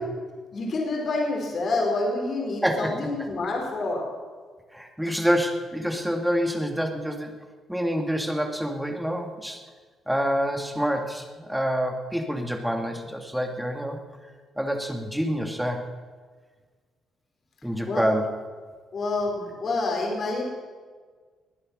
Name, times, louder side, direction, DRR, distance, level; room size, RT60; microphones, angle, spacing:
voice 1, 0.5-4.0 17.9-18.1 18.9-20.4, left 2 dB, 50° left, 0 dB, 4.6 m, -27 dB
voice 2, 2.6-2.9 4.7-7.4 7.7-9.6 10.1-14.0 14.6-15.9 17.6-18.2, equal, 5° right, 4 dB, 2.1 m, -27 dB
20.5 x 9.7 x 6.4 m, 1.5 s
cardioid pair, 90°, 0 cm